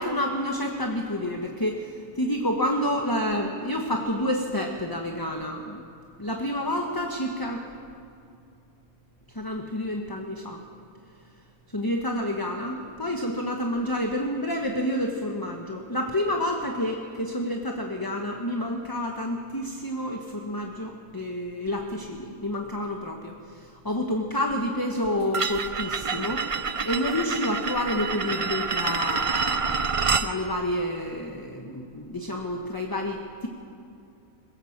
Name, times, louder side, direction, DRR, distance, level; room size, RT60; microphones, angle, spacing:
voice 1, 0.0-5.8 6.2-7.6 9.3-10.6 11.7-29.9 30.2-33.5, left 1 dB, 15° left, 2 dB, 1.1 m, -29 dB
sound 1, 25.3-30.3, right 5 dB, 50° right, 0.4 m, -27 dB
21.0 x 17.0 x 7.4 m, 2.5 s
omnidirectional pair, 1.6 m